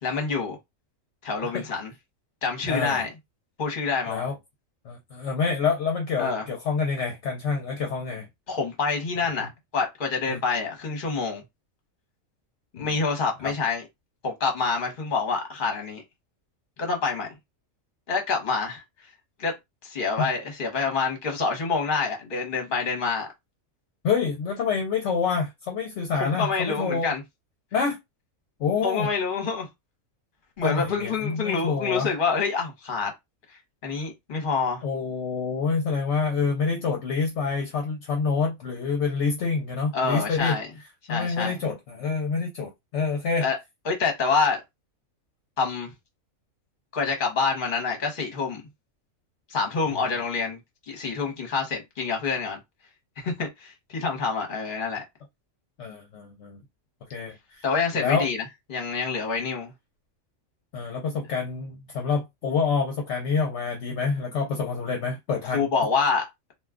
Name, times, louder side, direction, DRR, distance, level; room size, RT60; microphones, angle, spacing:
voice 1, 0.0-0.6 1.2-1.9 2.4-3.1 3.6-4.2 6.2-6.4 8.5-11.4 12.7-13.8 14.2-16.0 16.8-17.3 18.1-18.8 19.4-19.5 19.8-23.3 26.1-27.2 28.8-29.7 30.6-33.1 33.8-34.8 39.9-40.7 41.1-41.5 43.4-43.6 43.8-44.6 45.6-45.9 46.9-48.6 49.5-50.6 50.9-52.6 53.2-55.0 57.6-58.4 58.7-59.7 65.5-66.2, left 4 dB, 40° left, 1.0 m, -27 dB
voice 2, 2.7-3.0 4.1-4.3 4.8-8.3 10.3-10.4 12.8-12.9 13.4-13.5 20.2-20.3 24.0-27.1 27.7-28.0 28.6-29.1 30.6-32.1 34.8-40.6 41.1-43.5 55.8-56.6 57.1-57.6 57.9-58.3 60.7-65.7, left 5 dB, 65° left, 0.9 m, -27 dB
2.5 x 2.3 x 3.6 m
omnidirectional pair, 1.4 m